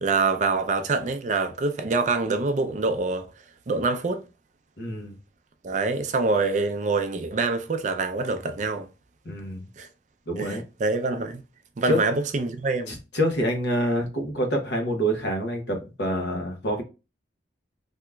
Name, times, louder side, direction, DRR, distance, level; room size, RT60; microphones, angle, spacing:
voice 1, 0.0-3.3 3.7-4.2 5.6-8.9 9.8-9.9 10.4-11.4 11.8-12.9, right 3 dB, 40° right, 0.4 m, -25 dB
voice 2, 4.8-5.2 9.2-9.6 10.3-10.6 11.9-12.0 12.9-16.8, equal, 65° left, 1.0 m, -26 dB
3.5 x 2.8 x 2.2 m
head